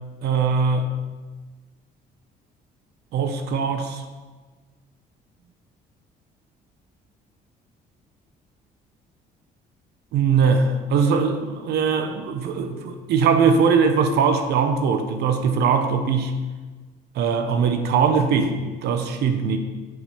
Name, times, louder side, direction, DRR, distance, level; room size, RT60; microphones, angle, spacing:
voice 1, 0.2-0.9 3.1-4.0 10.1-16.3 17.1-19.6, right 5 dB, 75° right, 7 dB, 1.0 m, -21 dB
8.0 x 5.0 x 5.7 m, 1.3 s
cardioid pair, 110°, 17 cm